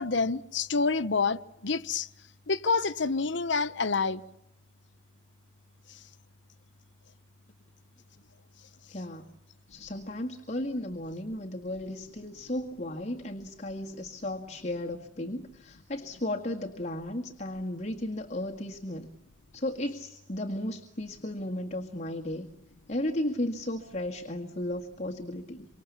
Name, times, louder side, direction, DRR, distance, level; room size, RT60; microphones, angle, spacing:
voice 1, 0.0-2.1 2.5-4.2, left 4 dB, 75° left, 1.0 m, -28 dB
voice 2, 8.9-9.3 9.7-19.1 19.5-22.5 22.9-25.7, left 1 dB, 40° left, 1.9 m, -34 dB
28.0 x 25.5 x 7.1 m
head